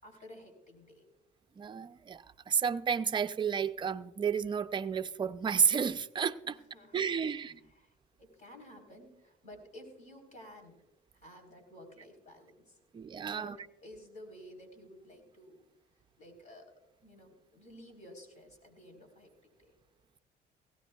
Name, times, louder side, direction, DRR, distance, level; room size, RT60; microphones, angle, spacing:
voice 1, 0.0-1.0 6.4-10.8 11.1-12.8 13.2-15.6 16.2-16.7 17.0-19.3 19.6-19.8, left 1 dB, 45° left, 4.0 m, -53 dB
voice 2, 1.6-6.6 6.9-7.6 12.9-13.6, right 7 dB, 25° right, 0.5 m, -31 dB
18.5 x 16.5 x 2.3 m
cardioid pair, 110°, 17 cm